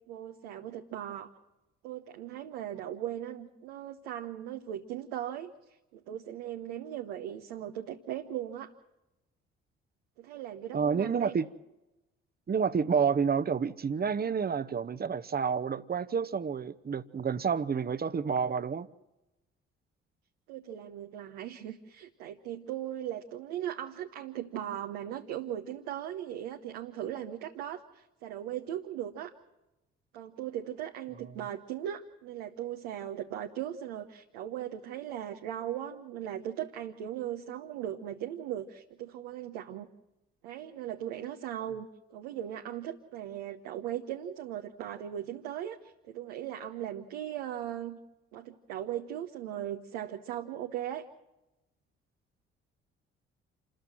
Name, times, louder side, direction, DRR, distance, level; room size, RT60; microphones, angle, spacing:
voice 1, 0.1-1.3 1.8-8.7 10.2-11.3 20.5-29.3 30.1-39.9 40.4-48.0 48.3-51.1, right 11 dB, 75° right, 1.1 m, -38 dB
voice 2, 10.7-11.5 12.5-18.9, right 6 dB, 30° right, 0.9 m, -29 dB
27.5 x 14.0 x 7.4 m
hypercardioid pair, 50°, 32 cm